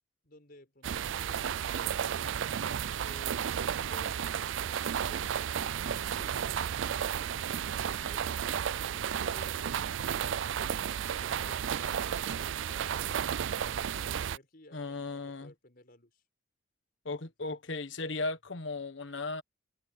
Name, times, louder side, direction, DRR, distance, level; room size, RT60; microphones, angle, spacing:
voice 1, 0.2-2.5 3.0-6.4 6.8-8.3 8.8-13.2 13.6-16.3, left 1 dB, 50° left, 6.0 m, -56 dB
sound 1, 0.8-14.4, right 8 dB, 70° right, 0.4 m, -33 dB
voice 2, 14.7-15.5 17.0-19.4, left 3 dB, 70° left, 1.3 m, -36 dB
head